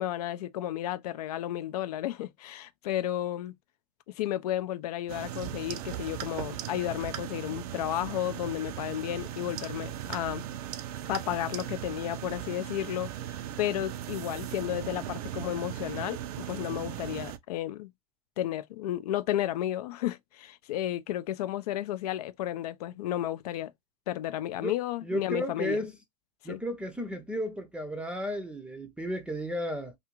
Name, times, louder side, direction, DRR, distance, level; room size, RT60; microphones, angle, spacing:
voice 1, 0.0-3.5 4.2-10.5 11.1-13.1 13.6-17.9 18.4-23.7 24.1-25.8 26.4-26.6, left 12 dB, 80° left, 0.4 m, -32 dB
sound 1, 5.1-17.4, right 11 dB, 75° right, 0.4 m, -38 dB
voice 2, 24.6-26.0 26.4-30.0, equal, 5° right, 0.4 m, -34 dB
2.4 x 2.4 x 2.9 m
supercardioid pair, 120°, 20 cm